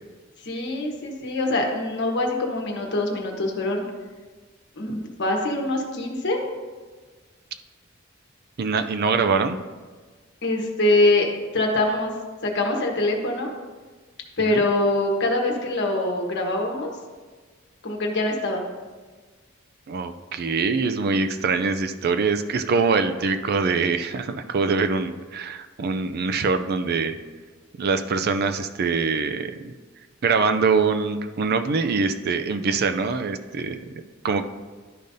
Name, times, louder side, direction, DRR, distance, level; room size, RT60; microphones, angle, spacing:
voice 1, 0.4-3.8 4.8-6.4 10.4-12.1 12.4-13.5 14.4-16.9 17.8-18.6, left 2 dB, 60° left, 1 dB, 1.2 m, -24 dB
voice 2, 8.6-9.6 14.5-14.6 19.9-27.2 27.8-29.7 30.2-33.8 34.2-34.4, right 4 dB, 50° right, 9 dB, 0.4 m, -23 dB
11.5 x 5.1 x 2.7 m, 1.4 s
head